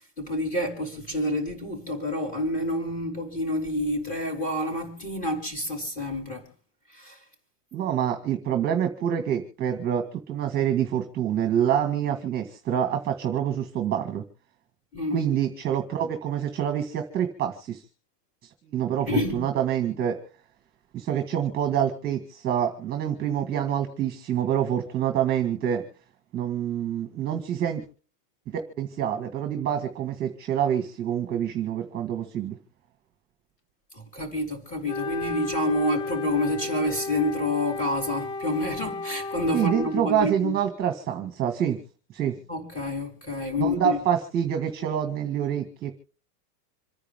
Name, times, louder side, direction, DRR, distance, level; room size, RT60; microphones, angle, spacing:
voice 1, 0.2-6.4 6.9-7.2 14.9-15.2 19.1-19.4 33.9-40.5 42.5-44.0, left 1 dB, 15° left, 5.0 m, -28 dB
voice 2, 7.7-14.2 15.1-17.8 18.6-20.2 20.9-25.8 26.3-27.8 28.5-32.6 39.5-41.8 42.1-42.4 43.6-45.9, right 9 dB, 20° right, 1.8 m, -26 dB
Wind instrument woodwind instrument, 34.8-40.1, left 3 dB, 85° left, 2.5 m, -34 dB
27.5 x 9.9 x 3.7 m
supercardioid pair, 170°, 47 cm